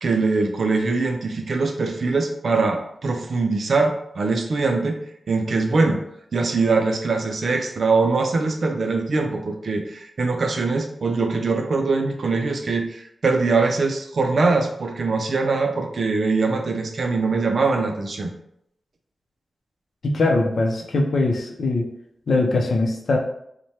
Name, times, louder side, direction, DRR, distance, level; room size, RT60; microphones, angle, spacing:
voice 1, 0.0-5.0 5.3-6.0 6.3-18.3, right 3 dB, 65° right, 4 dB, 0.4 m, -22 dB
voice 2, 20.0-21.9 22.3-23.2, left 2 dB, 75° left, 1 dB, 0.5 m, -21 dB
3.1 x 2.1 x 2.7 m, 0.73 s
wide cardioid pair, 105°, 0 cm